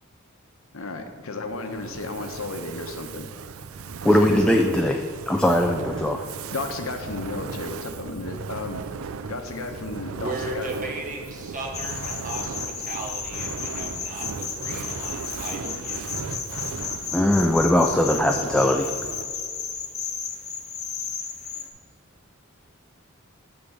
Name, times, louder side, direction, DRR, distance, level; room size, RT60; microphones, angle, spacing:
voice 1, 0.7-3.3 4.1-4.4 6.5-8.8 9.3-10.7, left 3 dB, 80° left, 5 dB, 1.0 m, -33 dB
Fire, 1.5-19.4, right 5 dB, 85° right, 0.5 m, -37 dB
voice 2, 4.0-6.2 17.1-18.9, left 1 dB, 5° left, 2 dB, 0.4 m, -20 dB
voice 3, 10.1-16.2, right 2 dB, 40° right, 1 dB, 1.3 m, -36 dB
sound 1, 11.7-21.7, left 6 dB, 35° left, 0.9 m, -33 dB
10.0 x 3.8 x 7.2 m, 2.1 s
head